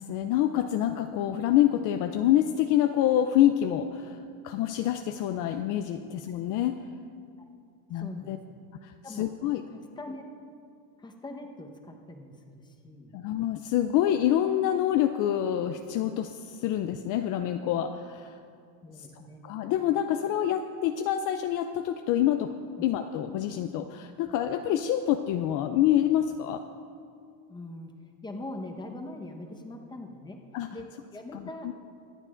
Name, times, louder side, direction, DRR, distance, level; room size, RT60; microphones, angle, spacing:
voice 1, 0.0-4.2 4.4-6.8 7.9-8.4 8.8-9.6 13.1-18.4 19.4-22.5 22.8-26.6 30.5-30.7 31.3-31.7, left 11 dB, 50° left, 7 dB, 0.5 m, -26 dB
voice 2, 8.0-8.3 9.0-9.5 10.0-10.2 11.0-13.1 18.8-19.4 27.5-27.9 28.2-30.4 30.7-31.7, left 1 dB, 10° left, 2 dB, 1.0 m, -42 dB
24.0 x 9.0 x 2.5 m, 2.3 s
supercardioid pair, 130°, 43 cm